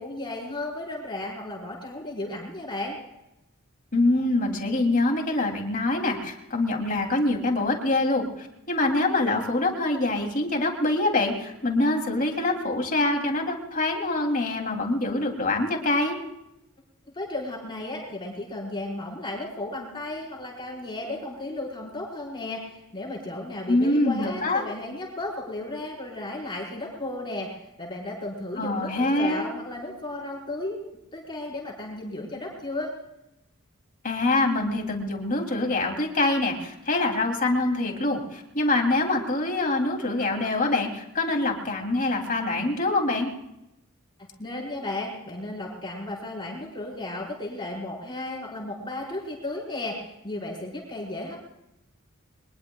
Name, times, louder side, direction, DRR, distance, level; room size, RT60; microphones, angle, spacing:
voice 1, 0.0-3.0 17.1-27.5 27.8-30.9 31.1-32.9 44.4-51.4, left 2 dB, 25° left, -3 dB, 5.2 m, -34 dB
voice 2, 3.9-16.2 23.7-24.6 28.6-29.5 34.0-43.3, left 2 dB, 40° left, 2 dB, 3.2 m, -25 dB
23.5 x 21.0 x 2.4 m, 0.87 s
head